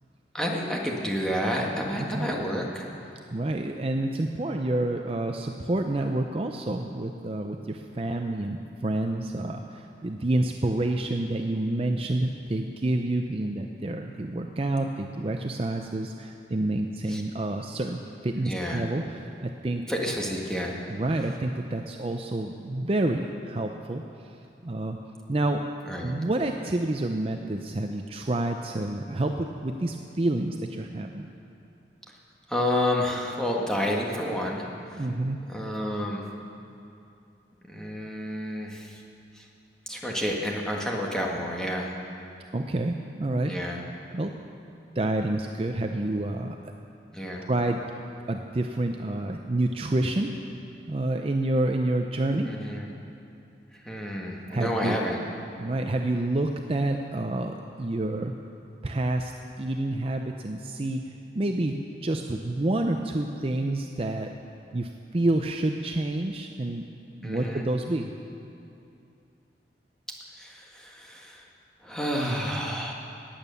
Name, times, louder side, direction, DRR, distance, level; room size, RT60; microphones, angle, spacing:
voice 1, 0.3-2.9 17.1-17.2 18.4-18.9 19.9-20.8 25.9-26.1 32.5-35.1 35.5-36.2 37.7-39.0 39.3-39.5 39.9-42.0 43.5-43.8 47.1-47.5 52.3-52.9 53.7-55.2 67.2-67.6 70.3-71.4 71.8-72.9, equal, 5° left, -2 dB, 1.5 m, -30 dB
voice 2, 3.3-19.8 20.9-24.4 24.6-25.0 25.3-25.6 26.0-31.3 35.0-35.4 42.5-43.5 44.1-44.3 45.0-46.7 47.5-47.8 48.3-50.3 50.9-52.5 54.5-55.0 55.6-58.4 58.8-59.3 59.6-64.3 64.7-66.8 67.2-68.1, right 2 dB, 30° right, 4 dB, 0.5 m, -28 dB
17.5 x 9.0 x 6.9 m, 2.7 s
head